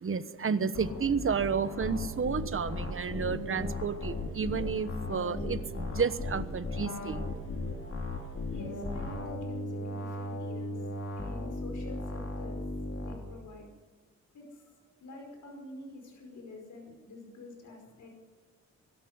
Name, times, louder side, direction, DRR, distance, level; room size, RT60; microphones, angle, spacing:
voice 1, 0.0-7.2, right 6 dB, 45° right, 13 dB, 1.1 m, -31 dB
sound 1, 0.7-13.1, left 2 dB, 55° left, 4.1 m, -37 dB
voice 2, 8.5-10.8 11.2-12.6 12.9-13.7 14.3-18.1, left 2 dB, 80° left, 1 dB, 5.2 m, -47 dB
21.0 x 13.0 x 9.7 m, 1.4 s
cardioid pair, 90°, 29 cm